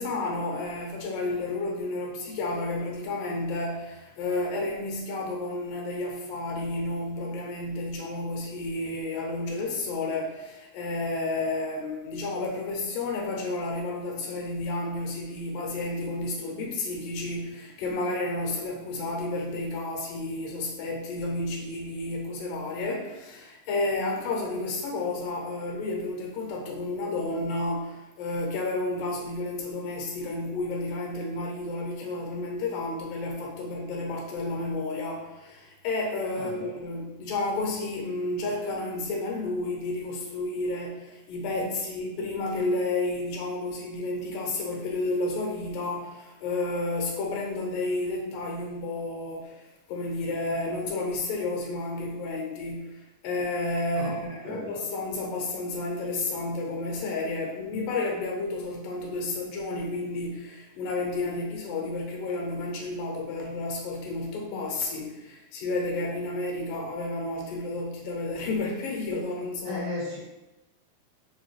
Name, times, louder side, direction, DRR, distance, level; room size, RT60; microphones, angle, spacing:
voice 1, 0.0-69.8, left 2 dB, 80° left, -1 dB, 2.5 m, -31 dB
voice 2, 36.3-36.7 53.9-54.7 69.6-70.2, left 2 dB, 50° right, -9 dB, 1.4 m, -35 dB
6.6 x 2.3 x 3.2 m, 1.0 s
omnidirectional pair, 3.8 m